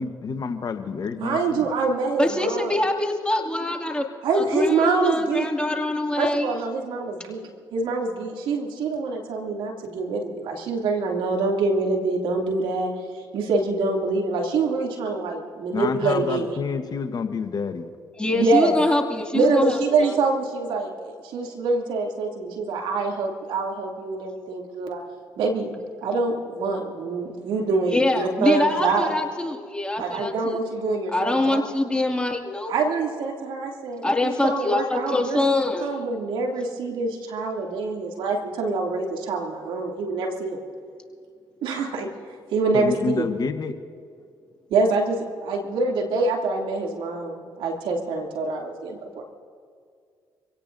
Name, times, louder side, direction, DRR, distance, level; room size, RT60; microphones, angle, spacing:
voice 1, 0.0-1.7 15.7-17.9 42.7-43.8, left 5 dB, 50° left, 8 dB, 1.1 m, -28 dB
voice 2, 1.2-2.7 4.2-5.5 6.2-16.6 18.3-18.7 19.3-25.0 25.4-29.1 30.0-31.6 32.7-35.4 35.8-40.6 41.6-42.1 42.5-43.2 44.7-49.2, right 3 dB, 75° right, 0 dB, 2.7 m, -25 dB
voice 3, 2.2-4.1 4.3-6.5 18.1-20.2 27.9-30.6 31.1-32.7 34.0-35.9, left 2 dB, 10° left, 1 dB, 2.3 m, -24 dB
26.0 x 17.0 x 2.7 m, 2.1 s
supercardioid pair, 60°, 9 cm